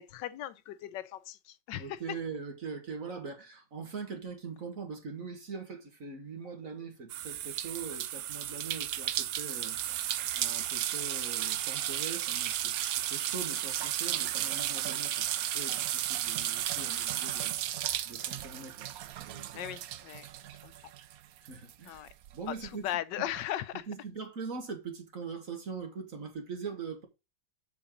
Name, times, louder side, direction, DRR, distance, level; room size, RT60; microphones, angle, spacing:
voice 1, 0.0-2.0 19.5-20.3 20.6-20.7 21.9-22.1 22.5-23.9, left 12 dB, 90° left, 1.3 m, -38 dB
voice 2, 1.8-18.9 19.3-19.6 20.4-20.5 21.4-22.0 22.3-22.9 23.9-27.1, right 5 dB, 50° right, 2.1 m, -42 dB
sound 1, 7.1-21.1 21.5-22.7, right 12 dB, 70° right, 0.9 m, -34 dB
7.1 x 6.9 x 3.7 m
omnidirectional pair, 1.9 m